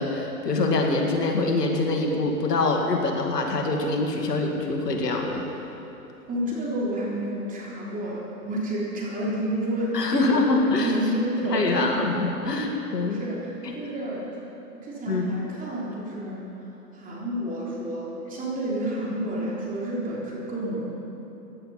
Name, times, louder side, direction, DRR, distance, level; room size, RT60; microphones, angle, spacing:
voice 1, 0.0-5.4 9.9-11.0 11.5-13.2 13.6-13.8 15.1-15.2, left 2 dB, 85° left, 2 dB, 2.1 m, -24 dB
voice 2, 6.3-12.0 12.6-12.7 13.1-14.2 14.8-16.4 16.9-20.9, right 1 dB, 15° right, -5 dB, 3.4 m, -30 dB
15.5 x 10.0 x 5.6 m, 3.0 s
hypercardioid pair, 125°, 47 cm